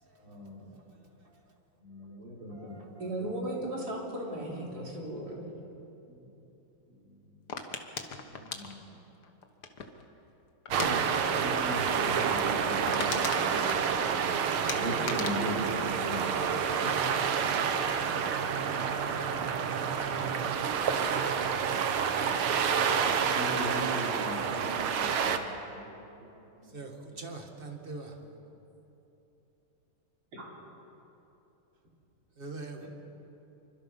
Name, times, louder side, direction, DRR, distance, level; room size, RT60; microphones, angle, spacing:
voice 1, 0.2-0.7 1.8-2.7 3.2-3.3 8.3-8.9 10.7-14.0 14.7-16.2 23.2-25.4 25.6-26.3 26.5-26.8 30.3-30.4, equal, 70° right, 6.5 m, -39 dB
voice 2, 3.0-5.4 20.2-20.3 32.8-32.9, right 1 dB, 45° right, 4.0 m, -36 dB
sound 1, 7.5-10.1 10.7-10.9 11.2-11.5 11.7-11.8 12.2-12.3 12.6-14.3 14.7-16.7 17.0-17.5, left 5 dB, 55° left, 1.8 m, -38 dB
sound 2, 10.7-25.4, right 7 dB, 90° right, 2.0 m, -29 dB
voice 3, 27.2-28.1 32.4-32.9, right 3 dB, 25° right, 2.1 m, -41 dB
27.0 x 24.5 x 5.6 m
omnidirectional pair, 2.3 m